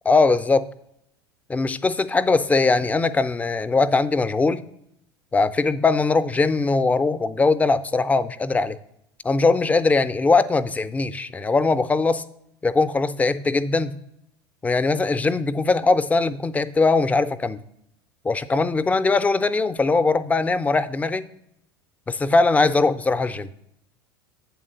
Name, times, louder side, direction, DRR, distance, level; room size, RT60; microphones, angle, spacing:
voice 1, 0.1-0.7 1.5-4.6 5.3-8.8 9.2-12.2 12.6-14.0 14.6-17.6 18.2-21.3 22.1-23.5, left 3 dB, 10° left, 14 dB, 0.4 m, -20 dB
8.2 x 3.7 x 6.5 m, 0.75 s
figure-of-eight pair, 75°, 13 cm